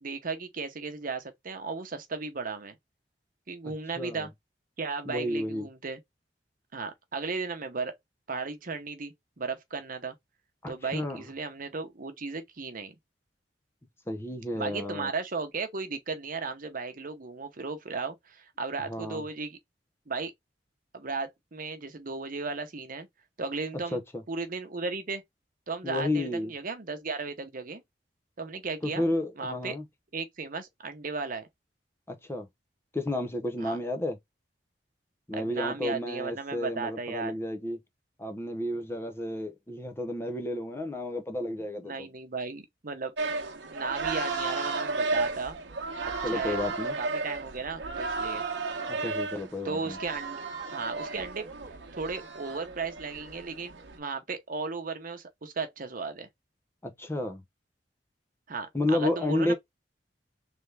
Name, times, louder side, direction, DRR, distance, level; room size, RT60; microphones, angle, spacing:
voice 1, 0.0-2.8 3.5-4.3 4.8-6.0 6.7-8.0 8.3-10.2 10.7-12.9 14.5-19.6 20.1-20.3 20.9-23.1 23.4-24.0 24.3-25.2 25.7-27.8 28.4-29.1 29.4-29.8 30.1-31.5 33.6-33.8 35.3-37.4 41.8-43.1 43.7-45.6 46.0-46.6 47.0-48.4 49.6-50.4 50.7-51.5 52.0-56.3 58.5-59.5, right 4 dB, 50° right, 0.9 m, -35 dB
voice 2, 4.0-4.3 5.1-5.7 10.6-11.2 14.1-15.1 18.9-19.2 23.9-24.0 25.8-26.5 28.8-29.8 32.1-32.5 32.9-34.2 35.3-37.8 38.2-42.1 46.2-46.9 48.9-50.0 56.8-57.4 58.7-59.5, left 1 dB, 15° left, 0.6 m, -31 dB
sound 1, 43.2-54.0, right 3 dB, 80° right, 0.9 m, -34 dB
3.4 x 3.3 x 3.3 m
head